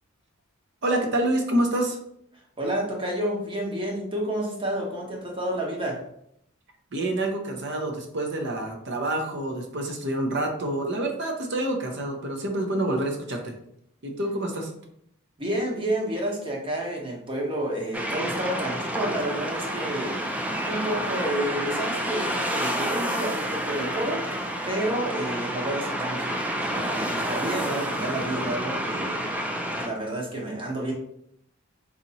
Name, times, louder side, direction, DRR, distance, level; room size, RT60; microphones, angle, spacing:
voice 1, 0.8-2.0 6.9-13.5 14.0-14.7, right 1 dB, 55° right, 2 dB, 0.7 m, -27 dB
voice 2, 2.6-6.0 15.4-20.2 20.7-30.9, right 1 dB, 25° right, -1 dB, 0.8 m, -30 dB
sound 1, 17.9-29.9, right 1 dB, 5° right, 0.3 m, -29 dB
4.1 x 2.9 x 2.7 m, 0.74 s
head